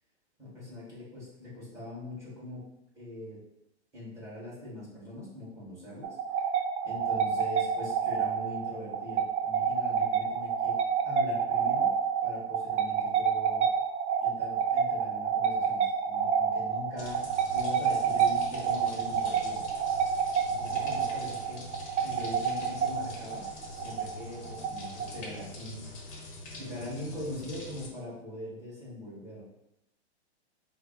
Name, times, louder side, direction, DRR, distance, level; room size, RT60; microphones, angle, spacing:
voice 1, 0.4-2.6 2.9-3.4 3.9-6.2 6.8-11.9 12.2-13.6 14.2-19.6 20.5-21.7 22.0-23.5 23.7-26.2 26.5-29.4, left 1 dB, 10° right, -10 dB, 1.4 m, -42 dB
sound 1, 6.0-25.4, right 7 dB, 90° right, 0.6 m, -29 dB
sound 2, 17.0-27.9, left 2 dB, 30° left, 0.8 m, -44 dB
4.5 x 2.0 x 3.6 m, 0.86 s
hypercardioid pair, 155°, 34 cm